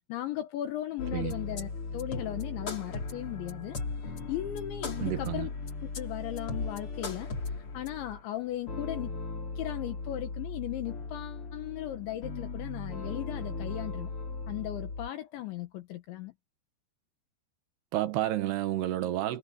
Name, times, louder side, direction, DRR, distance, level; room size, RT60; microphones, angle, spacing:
voice 1, 0.1-3.8 4.3-5.5 6.0-7.3 7.7-9.2 9.6-14.1 14.5-16.3, left 13 dB, 75° left, 3.7 m, -37 dB
sound 1, 1.0-15.1, left 3 dB, 30° left, 3.5 m, -37 dB
voice 2, 5.0-5.5 17.9-19.4, right 14 dB, 70° right, 2.9 m, -30 dB
omnidirectional pair, 5.5 m